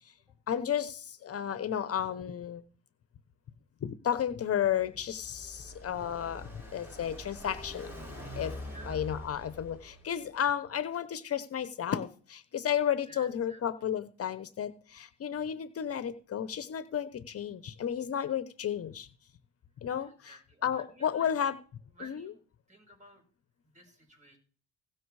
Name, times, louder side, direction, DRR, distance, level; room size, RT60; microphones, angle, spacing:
voice 1, 0.5-2.6 3.8-7.9 8.4-8.5 8.9-19.1 19.8-21.6 22.0-22.3, left 9 dB, 50° left, 14 dB, 0.9 m, -33 dB
Car passing by, 4.6-10.2, left 1 dB, 10° right, 7.7 m, -44 dB
voice 2, 8.7-9.0 13.1-13.6 20.0-21.3 21.9-22.4 22.7-23.2 23.7-24.4, right 1 dB, 25° right, 2 dB, 6.0 m, -53 dB
17.0 x 6.0 x 4.8 m, 0.41 s
cardioid pair, 90°, 30 cm